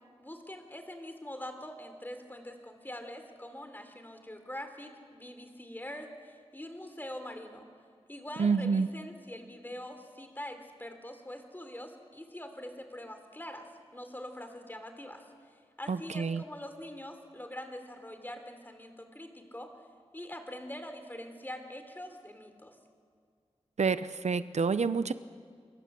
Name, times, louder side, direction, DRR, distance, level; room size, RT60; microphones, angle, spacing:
voice 1, 0.2-7.6 8.1-19.7 20.1-22.8, left 1 dB, 15° left, 6 dB, 3.3 m, -44 dB
voice 2, 8.4-8.9 15.9-16.4 23.8-25.1, right 5 dB, 85° right, 13 dB, 0.7 m, -28 dB
26.0 x 24.0 x 7.6 m, 2.1 s
wide cardioid pair, 85°, 11 cm